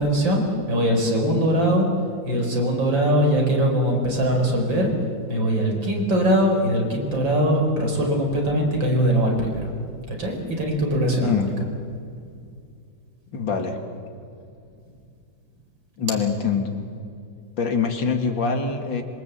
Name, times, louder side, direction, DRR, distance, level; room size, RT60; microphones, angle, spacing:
voice 1, 0.0-1.9 2.2-4.9 5.3-9.7 10.1-11.4, equal, 80° right, 1 dB, 5.4 m, -21 dB
voice 2, 13.3-13.8 16.0-16.8 17.6-19.0, left 5 dB, 80° left, 5 dB, 3.0 m, -24 dB
26.0 x 24.0 x 8.3 m, 2.4 s
omnidirectional pair, 2.0 m